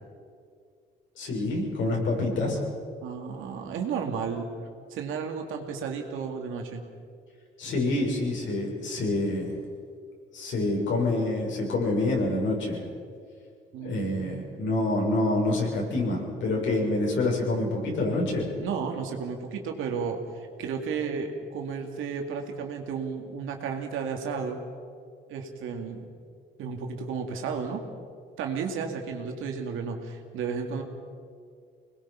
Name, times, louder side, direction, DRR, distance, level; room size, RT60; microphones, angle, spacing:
voice 1, 1.2-2.6 7.6-9.5 10.3-12.8 13.8-18.4, left 2 dB, 70° left, -1 dB, 6.7 m, -27 dB
voice 2, 3.0-4.5 4.9-6.8 13.7-14.6 18.6-24.6 25.3-26.1 26.6-27.8 28.4-30.8, right 6 dB, 90° right, 3 dB, 2.7 m, -33 dB
25.0 x 20.5 x 5.8 m, 2.2 s
cardioid pair, 90°, 20 cm